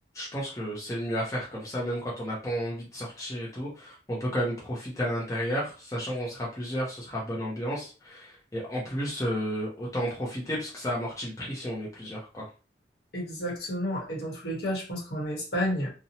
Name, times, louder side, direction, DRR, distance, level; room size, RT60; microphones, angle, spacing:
voice 1, 0.1-12.4, equal, 20° left, -5 dB, 0.5 m, -32 dB
voice 2, 13.1-15.9, equal, 60° left, -3 dB, 1.0 m, -31 dB
2.7 x 2.0 x 2.8 m, 0.34 s
head